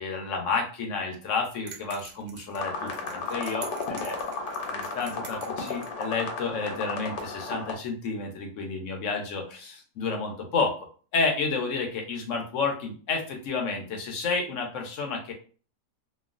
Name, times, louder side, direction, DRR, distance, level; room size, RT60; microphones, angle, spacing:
voice 1, 0.0-4.2 4.7-10.8 11.1-15.3, left 4 dB, 60° left, 2 dB, 0.9 m, -30 dB
sound 1, 1.7-6.1, right 6 dB, 90° right, 1.3 m, -46 dB
sound 2, 2.6-7.7, left 3 dB, 85° left, 1.3 m, -34 dB
3.0 x 2.3 x 2.4 m, 0.39 s
omnidirectional pair, 1.8 m